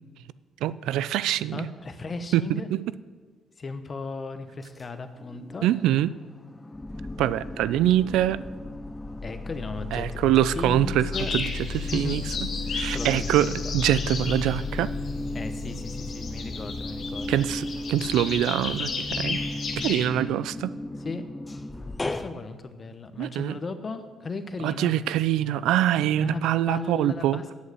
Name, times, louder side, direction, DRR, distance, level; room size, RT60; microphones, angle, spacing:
voice 1, 0.6-1.7 2.3-2.8 5.6-6.1 7.2-8.4 9.9-12.2 12.7-14.9 17.3-19.4 19.8-20.7 23.2-23.6 24.6-27.4, right 12 dB, 90° right, 17 dB, 0.3 m, -24 dB
voice 2, 1.5-2.7 3.6-5.7 9.2-11.3 11.9-12.2 12.9-13.7 15.3-17.5 21.0-21.2 22.0-24.9 26.2-26.4 26.7-27.4, left 3 dB, 40° left, 9 dB, 0.9 m, -36 dB
sound 1, 5.2-6.0 6.4-22.3, left 2 dB, 20° left, 0.5 m, -34 dB
sound 2, 11.1-20.1, left 4 dB, 55° left, 1.7 m, -34 dB
8.3 x 8.0 x 7.8 m, 1.5 s
cardioid pair, 90°, 0 cm